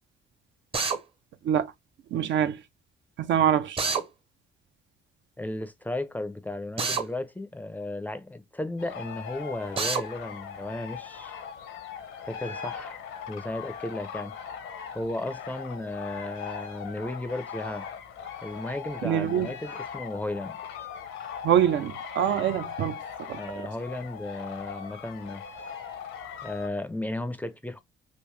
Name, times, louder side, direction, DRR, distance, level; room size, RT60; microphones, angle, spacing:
Drill, 0.7-1.0 3.8-4.0 6.8-7.1 9.8-10.0, right 5 dB, 30° right, 0.7 m, -27 dB
voice 1, 2.1-2.6 3.2-3.8 19.0-19.5 21.4-23.0 23.3-23.4, right 10 dB, 70° right, 0.5 m, -24 dB
voice 2, 5.4-11.3 12.3-13.0 13.3-14.3 14.9-17.9 18.4-20.6 23.4-25.4 26.4-27.8, left 2 dB, 10° left, 0.4 m, -34 dB
sound 1, 8.8-26.7, left 7 dB, 85° left, 0.8 m, -40 dB
3.6 x 2.5 x 3.1 m
cardioid pair, 90°, 20 cm